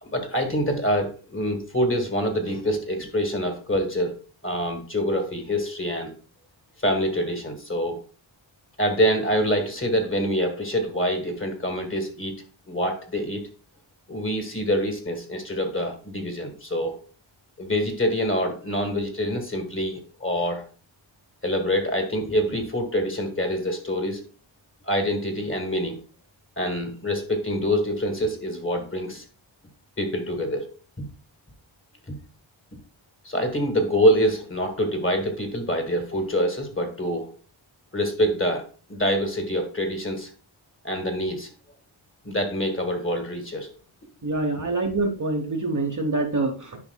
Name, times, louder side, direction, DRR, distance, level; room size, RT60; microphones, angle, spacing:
voice 1, 0.0-4.1 4.4-6.1 6.8-8.0 8.8-12.3 12.7-13.4 14.1-17.0 17.6-20.6 21.4-24.2 24.9-26.0 26.6-29.2 30.0-30.7 31.0-31.1 32.1-32.2 33.2-37.3 37.9-38.6 38.9-40.3 40.8-41.5 42.2-43.7, equal, 25° left, 5 dB, 1.5 m, -25 dB
voice 2, 44.2-46.8, right 2 dB, 40° right, 4 dB, 1.0 m, -25 dB
10.0 x 5.2 x 2.2 m, 0.38 s
wide cardioid pair, 95°, 48 cm